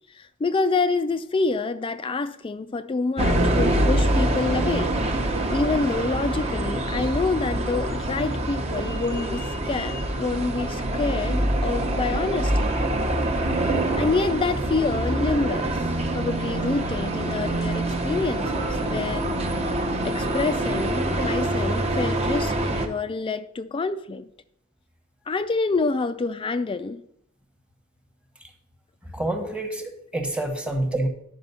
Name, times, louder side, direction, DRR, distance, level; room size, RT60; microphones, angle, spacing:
voice 1, 0.1-4.9 5.5-12.6 13.5-13.6 14.0-15.9 16.1-19.3 20.0-24.3 25.3-27.0, left 3 dB, 25° left, 0.3 m, -27 dB
sound 1, 3.2-22.9, right 1 dB, 30° right, 0.9 m, -25 dB
voice 2, 29.0-31.1, right 1 dB, 5° right, 1.1 m, -27 dB
10.5 x 5.1 x 5.4 m
head